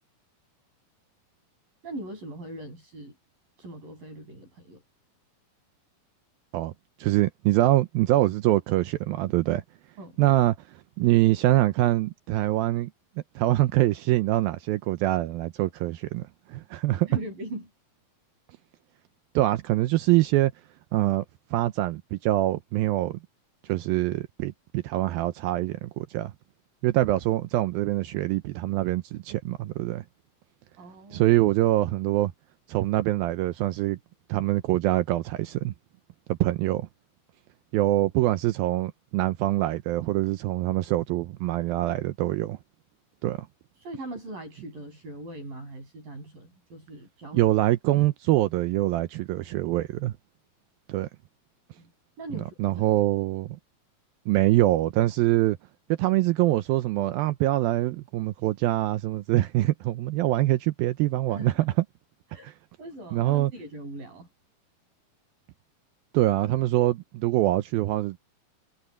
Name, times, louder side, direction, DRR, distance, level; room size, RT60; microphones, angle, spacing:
voice 1, 1.8-3.2 3.6-4.8 10.0-10.2 17.1-17.7 30.8-31.3 43.8-47.5 51.8-51.9 52.2-53.0 61.3-61.6 62.3-62.5 62.8-64.3, right 1 dB, 60° right, 9.4 m, -40 dB
voice 2, 7.0-9.6 10.2-10.6 11.0-12.9 13.4-17.1 19.4-20.5 20.9-21.2 21.5-23.2 23.7-26.3 26.8-30.0 31.1-32.3 32.7-34.0 34.3-35.7 36.3-36.9 37.7-42.6 43.2-43.5 47.3-50.1 50.9-51.1 52.3-53.6 54.3-55.6 56.0-61.7 63.1-63.5 66.1-68.2, right 16 dB, 80° right, 2.4 m, -24 dB
omnidirectional pair, 4.5 m